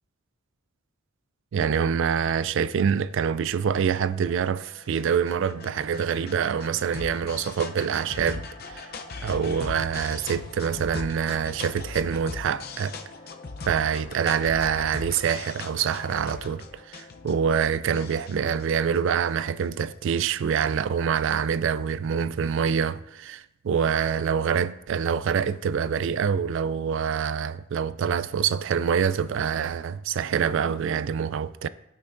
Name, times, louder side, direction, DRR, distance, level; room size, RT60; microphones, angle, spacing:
voice 1, 1.5-8.9 9.2-13.0 13.6-31.7, right 7 dB, 60° right, 0.3 m, -26 dB
sound 1, 4.3-19.8, left 4 dB, 45° left, 0.6 m, -40 dB
13.5 x 5.7 x 2.6 m
head